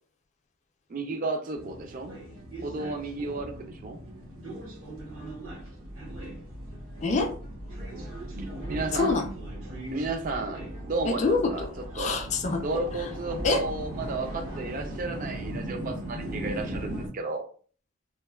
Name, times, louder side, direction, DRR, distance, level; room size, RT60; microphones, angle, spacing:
voice 1, 0.9-2.2 2.6-4.0 8.7-9.2 9.9-11.7 12.0-12.2 12.6-17.4, right 3 dB, 40° right, 5 dB, 0.4 m, -33 dB
sound 1, 1.5-17.1, right 1 dB, 75° right, 0.9 m, -38 dB
voice 2, 7.0-7.3 8.9-9.3 11.0-12.8 13.4-13.6, left 3 dB, 35° left, 4 dB, 0.4 m, -26 dB
3.1 x 2.1 x 2.2 m, 0.42 s
head